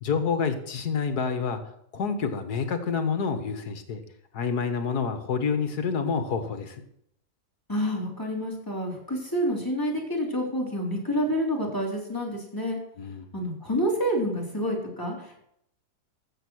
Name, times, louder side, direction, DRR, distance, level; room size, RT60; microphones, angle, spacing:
voice 1, 0.0-1.6 1.9-4.0 4.3-6.8 13.0-13.3, left 5 dB, 70° left, 8 dB, 1.9 m, -28 dB
voice 2, 7.7-12.8 13.3-15.4, equal, 10° left, -1 dB, 3.6 m, -28 dB
14.5 x 7.5 x 6.3 m, 0.72 s
omnidirectional pair, 1.8 m